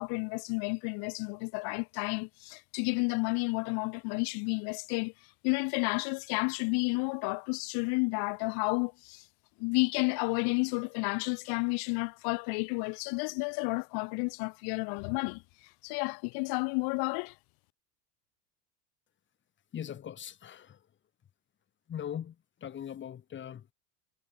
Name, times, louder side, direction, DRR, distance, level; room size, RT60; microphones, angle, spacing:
voice 1, 0.0-5.1 5.4-9.2 9.6-15.4 15.8-17.3, left 33 dB, 55° left, 0.8 m, -31 dB
voice 2, 19.7-20.8 21.9-22.3 22.6-23.7, left 9 dB, 25° left, 1.0 m, -40 dB
hypercardioid pair, 80°, 47 cm